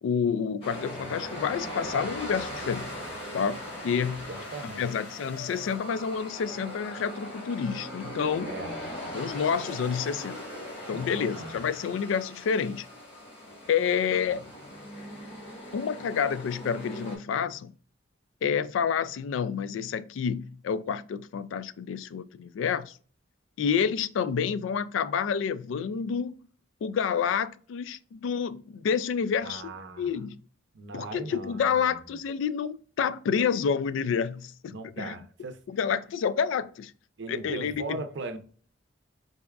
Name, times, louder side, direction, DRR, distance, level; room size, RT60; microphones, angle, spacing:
voice 1, 0.0-2.9 3.3-4.3 4.8-8.5 9.1-10.4 10.9-12.9 13.7-14.4 15.7-17.7 18.4-23.0 23.6-26.4 26.8-29.7 30.0-30.4 30.9-35.1 35.7-36.9 37.3-38.0, left 7 dB, 80° left, 0.3 m, -29 dB
sound 1, 0.6-17.2, equal, 30° left, 1.3 m, -40 dB
sound 2, 4.0-6.8, left 3 dB, 60° left, 0.7 m, -51 dB
voice 2, 4.3-4.9 8.4-8.8 10.9-11.6 29.4-30.1 30.7-31.9 34.7-35.6 37.2-38.4, right 2 dB, 65° right, 0.6 m, -39 dB
4.1 x 3.3 x 2.3 m
head